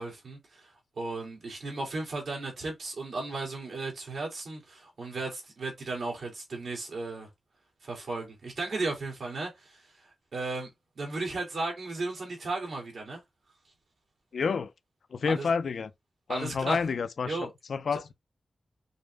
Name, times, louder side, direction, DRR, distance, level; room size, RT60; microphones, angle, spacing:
voice 1, 0.0-7.3 7.8-10.7 11.0-13.2 15.2-15.5 16.3-16.8 17.3-17.5 17.9-18.0, right 3 dB, 75° right, 2.0 m, -35 dB
voice 2, 14.3-14.7 15.1-15.9 16.3-18.1, left 5 dB, 80° left, 0.4 m, -29 dB
5.3 x 2.1 x 3.2 m
wide cardioid pair, 130°, 0 cm